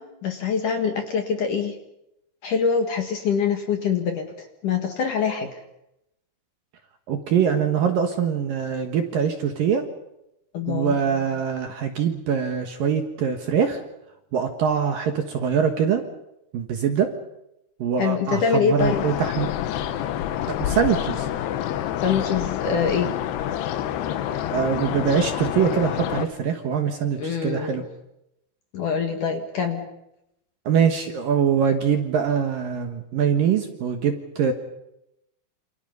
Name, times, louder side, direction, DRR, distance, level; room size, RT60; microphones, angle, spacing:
voice 1, 0.0-1.8 2.4-4.3 4.6-5.5 10.5-11.0 18.0-19.0 22.0-23.1 27.2-27.9 28.7-29.8, left 6 dB, 55° left, 4 dB, 2.6 m, -24 dB
voice 2, 7.1-9.9 10.7-13.8 14.3-16.1 16.5-17.2 17.8-19.5 20.5-21.3 24.5-27.8 30.7-34.5, right 7 dB, 60° right, 5 dB, 2.6 m, -23 dB
sound 1, 18.8-26.3, left 11 dB, 70° left, 2.8 m, -27 dB
28.0 x 28.0 x 5.5 m, 0.84 s
omnidirectional pair, 5.4 m